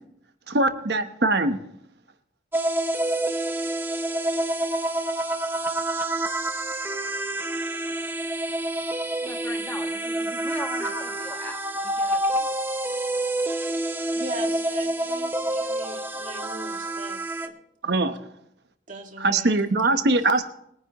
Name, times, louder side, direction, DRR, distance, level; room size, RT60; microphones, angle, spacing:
voice 1, 0.5-1.6 17.8-18.2 19.2-20.4, right 2 dB, 60° right, 1.0 m, -22 dB
sound 1, 2.5-17.5, right 1 dB, 10° right, 0.7 m, -28 dB
voice 2, 9.2-12.5, left 1 dB, 10° left, 1.6 m, -40 dB
voice 3, 14.1-17.5 18.9-19.5 19.8-20.4, right 1 dB, 45° right, 2.1 m, -40 dB
21.5 x 10.0 x 3.0 m
head